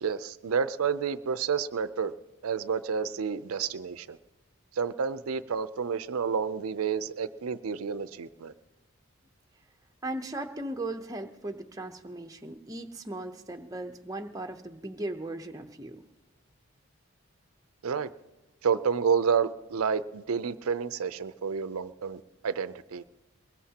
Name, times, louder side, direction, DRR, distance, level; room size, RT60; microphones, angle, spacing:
voice 1, 0.0-2.1 2.4-4.2 4.8-8.5 17.8-18.1 18.6-23.0, right 6 dB, 85° right, 0.5 m, -30 dB
voice 2, 10.0-16.0, right 1 dB, 15° right, 0.7 m, -37 dB
23.0 x 21.0 x 2.9 m
head